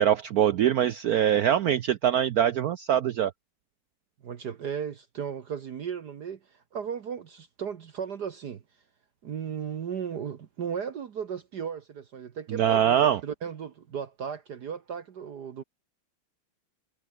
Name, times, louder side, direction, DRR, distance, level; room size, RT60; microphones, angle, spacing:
voice 1, 0.0-3.3 12.5-13.2, right 10 dB, 80° right, 0.8 m, -23 dB
voice 2, 4.2-8.6 9.2-15.6, right 7 dB, 55° right, 1.6 m, -36 dB
omnidirectional pair, 2.3 m